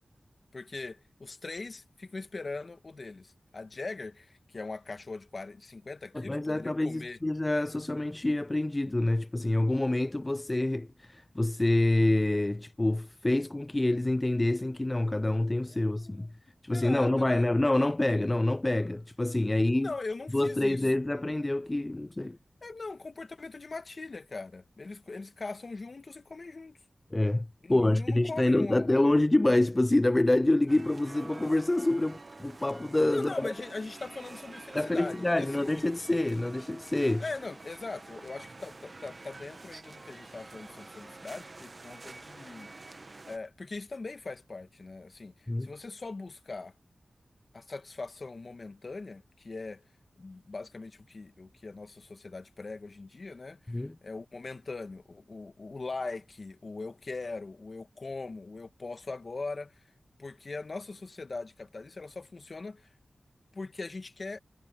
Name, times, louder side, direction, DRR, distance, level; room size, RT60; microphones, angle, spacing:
voice 1, 0.5-7.2 15.7-16.3 16.7-17.5 19.8-20.9 22.6-26.8 27.6-29.1 33.1-35.7 37.2-42.7 43.3-46.7 47.5-49.8 50.2-59.8 60.2-62.9 63.5-64.4, left 3 dB, 55° left, 1.9 m, -41 dB
voice 2, 6.1-16.3 16.6-19.9 20.3-22.4 27.1-33.5 34.7-37.2 45.5-45.7 53.7-54.0, left 1 dB, 25° left, 0.3 m, -27 dB
sound 1, 30.7-43.4, right 3 dB, 45° right, 1.1 m, -48 dB
cardioid pair, 55°, 0 cm